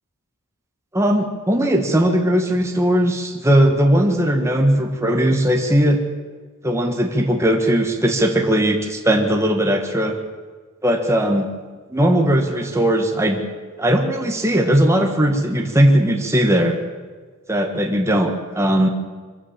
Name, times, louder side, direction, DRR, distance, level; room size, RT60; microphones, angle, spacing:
voice 1, 0.9-6.0 6.6-10.2 10.8-11.5 11.9-13.4 13.8-16.8 17.5-18.9, equal, 15° right, 2 dB, 1.7 m, -18 dB
23.5 x 14.5 x 7.5 m, 1.5 s
head